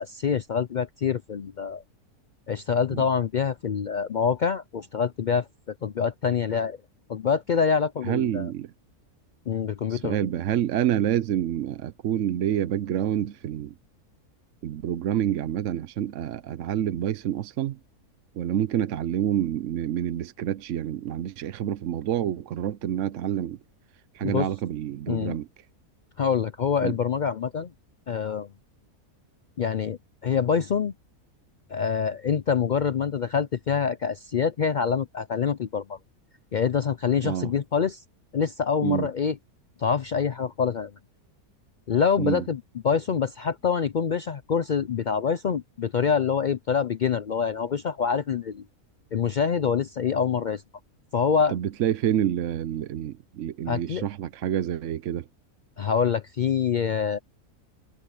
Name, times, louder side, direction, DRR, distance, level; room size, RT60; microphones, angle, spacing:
voice 1, 0.0-1.8 2.5-6.8 7.1-8.5 9.5-10.2 24.2-24.5 25.1-25.4 26.2-27.7 28.1-28.5 29.6-30.9 31.7-36.0 36.5-38.0 38.3-39.4 39.8-40.9 41.9-48.6 49.1-50.6 51.1-51.5 53.7-54.0 55.8-57.2, left 6 dB, 85° left, 0.4 m, -26 dB
voice 2, 8.0-8.7 9.9-13.7 14.6-17.8 18.4-23.6 24.1-25.5 26.8-26.9 37.2-37.5 38.8-39.1 42.2-42.4 51.5-55.2, right 11 dB, 65° right, 0.9 m, -28 dB
omnidirectional pair, 1.6 m